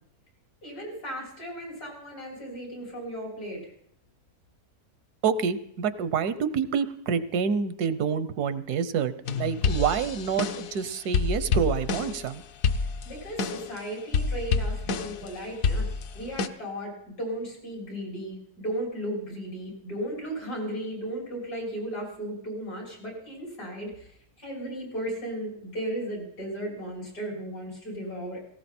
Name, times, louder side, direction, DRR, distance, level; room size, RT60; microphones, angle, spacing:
voice 1, 0.6-3.7 12.8-15.9 16.1-28.4, right 1 dB, 90° left, -2 dB, 7.1 m, -35 dB
voice 2, 5.2-12.4, right 6 dB, 90° right, 14 dB, 1.4 m, -27 dB
sound 1, 9.2-10.8 11.1-12.3 12.6-13.8 14.1-15.3 15.6-16.5, left 5 dB, 65° left, 1.1 m, -28 dB
18.5 x 17.0 x 4.4 m, 0.70 s
omnidirectional pair, 1.6 m